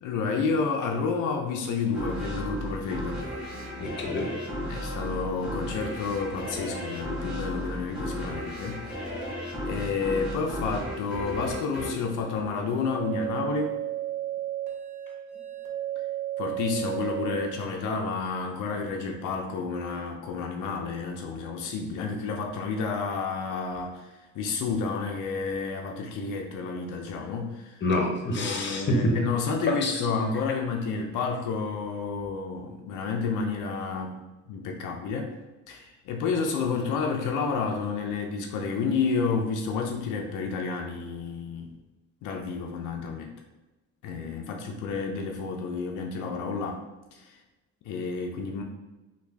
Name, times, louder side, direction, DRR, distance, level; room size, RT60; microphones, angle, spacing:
voice 1, 0.0-3.2 4.7-9.2 9.7-13.8 16.4-27.8 28.3-34.2 34.5-35.3 35.7-41.7 42.2-43.3 44.0-46.8 47.1-47.4 47.8-48.6, left 4 dB, 85° left, 2 dB, 0.5 m, -30 dB
sound 1, 1.9-13.1, equal, ahead, 1.4 m, -35 dB
voice 2, 3.8-4.3 27.8-29.1 29.8-30.0, left 1 dB, 35° left, 1 dB, 0.8 m, -26 dB
sound 2, 12.7-17.6, right 13 dB, 90° right, 0.9 m, -33 dB
3.4 x 2.3 x 3.2 m, 1.1 s
cardioid pair, 90°, 30 cm